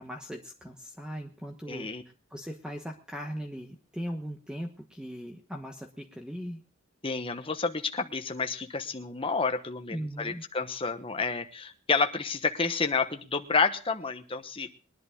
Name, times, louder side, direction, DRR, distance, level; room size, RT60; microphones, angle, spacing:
voice 1, 0.0-1.9 2.3-6.6 9.9-10.4, equal, 5° right, 3 dB, 1.1 m, -39 dB
voice 2, 1.7-2.0 7.0-14.7, left 4 dB, 25° left, 7 dB, 1.2 m, -30 dB
21.5 x 11.0 x 3.7 m, 0.36 s
head